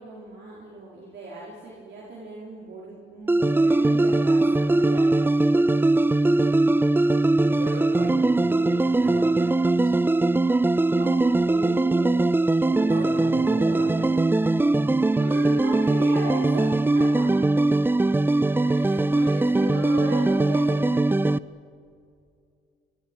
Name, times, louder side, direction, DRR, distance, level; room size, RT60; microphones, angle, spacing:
voice 1, 0.0-5.3 11.0-12.2 12.7-14.5 15.1-16.7 16.9-17.7 18.6-21.0, right 2 dB, 65° right, -5 dB, 5.0 m, -37 dB
sound 1, 3.3-21.4, right 2 dB, 10° right, 0.5 m, -21 dB
voice 2, 7.6-9.9 12.9-14.2 18.4-18.7, right 2 dB, 50° right, 2 dB, 7.2 m, -38 dB
27.5 x 25.0 x 5.6 m, 2.3 s
cardioid pair, 90°, 20 cm